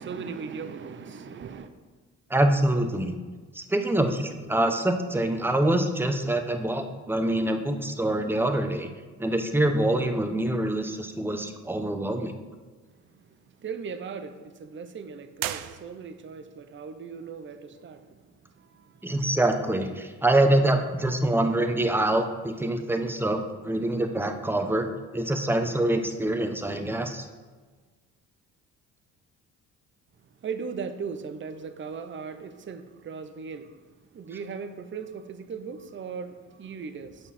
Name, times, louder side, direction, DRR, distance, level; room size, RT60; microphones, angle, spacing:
voice 1, 0.0-1.7 12.9-19.4 30.2-37.3, right 5 dB, 35° right, 10 dB, 0.7 m, -38 dB
voice 2, 2.3-3.2 3.5-8.9 9.2-12.3 19.0-27.2, right 1 dB, 5° right, 6 dB, 0.8 m, -25 dB
sound 1, 15.3-16.4, right 12 dB, 75° right, 0.5 m, -35 dB
8.5 x 5.3 x 4.2 m, 1.4 s
supercardioid pair, 70°, 33 cm